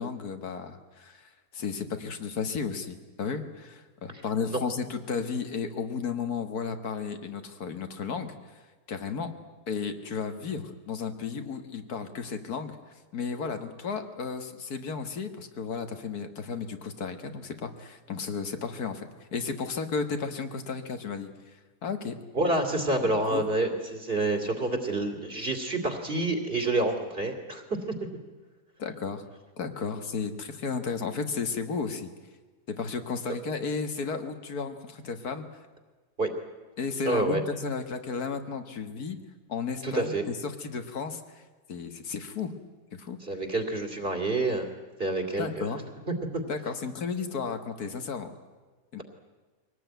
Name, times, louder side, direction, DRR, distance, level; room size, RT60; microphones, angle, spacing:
voice 1, 0.0-8.6 8.9-9.3 9.7-12.8 13.1-22.2 23.0-23.4 28.8-29.2 29.6-32.1 32.7-35.4 36.8-39.2 39.5-41.4 41.7-42.5 42.9-43.2 45.4-45.8 46.5-48.3 48.9-49.0, left 5 dB, 75° left, 7 dB, 2.0 m, -33 dB
voice 2, 22.3-28.0 36.2-36.3 37.1-37.4 39.8-40.2 43.2-44.7 45.0-45.7 46.3-46.4, right 2 dB, 35° right, 6 dB, 2.8 m, -28 dB
23.5 x 18.0 x 9.2 m, 1.3 s
omnidirectional pair, 1.7 m